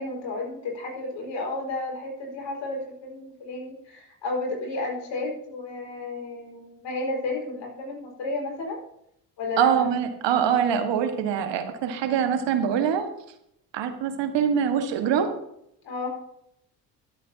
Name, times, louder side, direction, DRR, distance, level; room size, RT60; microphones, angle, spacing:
voice 1, 0.0-8.8 9.4-9.7 15.8-16.2, left 2 dB, 60° left, 0 dB, 5.0 m, -32 dB
voice 2, 9.6-13.1 13.7-15.3, right 8 dB, 60° right, 7 dB, 1.7 m, -24 dB
22.5 x 8.4 x 2.8 m, 0.75 s
hypercardioid pair, 55°, 48 cm